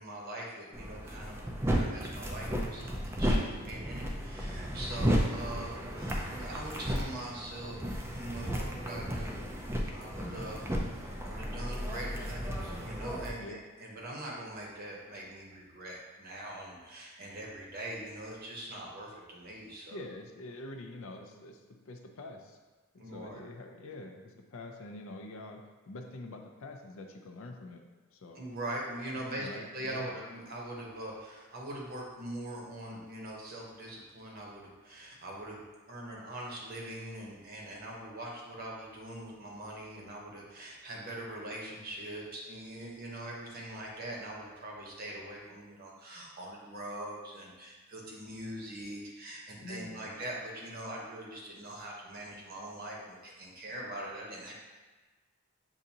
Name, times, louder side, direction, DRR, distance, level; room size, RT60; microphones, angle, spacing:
voice 1, 0.0-7.8 8.1-9.4 9.9-10.6 11.0-20.0 23.0-23.4 28.3-29.5 29.7-54.5, right 1 dB, 40° right, -2 dB, 0.8 m, -42 dB
sound 1, 0.7-13.3, equal, 10° right, 0.4 m, -34 dB
voice 2, 19.9-22.6 22.9-25.6 25.9-27.8 28.1-28.4 29.1-30.1 49.6-50.1, left 2 dB, 60° left, 3 dB, 0.5 m, -45 dB
6.9 x 2.6 x 2.7 m, 1.3 s
head